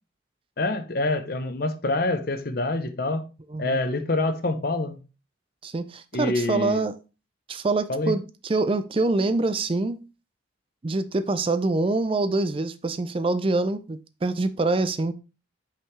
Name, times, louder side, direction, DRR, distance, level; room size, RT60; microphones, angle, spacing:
voice 1, 0.6-3.2 3.6-5.0 6.1-6.8 7.9-8.1, left 2 dB, 50° left, 0.7 m, -26 dB
voice 2, 5.6-7.0 7.5-10.0 10.8-15.1, right 2 dB, 30° right, 0.4 m, -25 dB
5.6 x 5.4 x 3.2 m
head